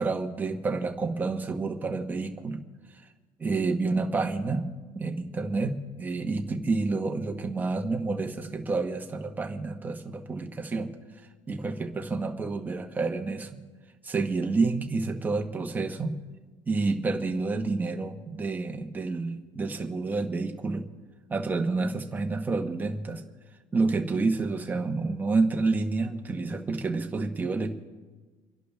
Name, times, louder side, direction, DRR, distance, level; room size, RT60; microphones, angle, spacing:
voice 1, 0.0-2.6 3.4-4.7 4.9-10.9 11.5-13.6 14.0-16.1 16.7-20.9 21.3-23.2 23.7-27.7, right 3 dB, 15° right, 5 dB, 1.1 m, -29 dB
29.0 x 11.5 x 3.5 m, 1.3 s
cardioid pair, 165°, 12 cm